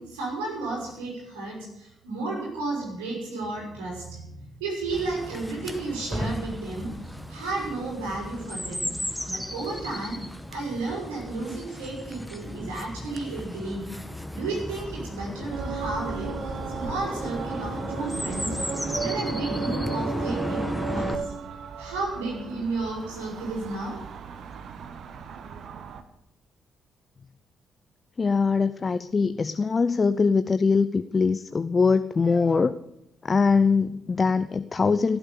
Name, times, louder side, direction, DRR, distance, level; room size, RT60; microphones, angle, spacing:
voice 1, 0.0-8.9 9.2-10.2 10.5-13.9 14.3-18.6 19.0-21.3 21.8-24.0, right 3 dB, 75° right, -1 dB, 5.8 m, -33 dB
Chirp tweet, 4.9-21.1, equal, ahead, 1.9 m, -34 dB
sound 1, 15.5-26.0, right 6 dB, 55° right, 1.3 m, -35 dB
voice 2, 28.2-32.7 33.2-35.2, left 4 dB, 35° left, 13 dB, 0.6 m, -22 dB
16.5 x 11.5 x 6.7 m, 0.82 s
figure-of-eight pair, 40°, 0 cm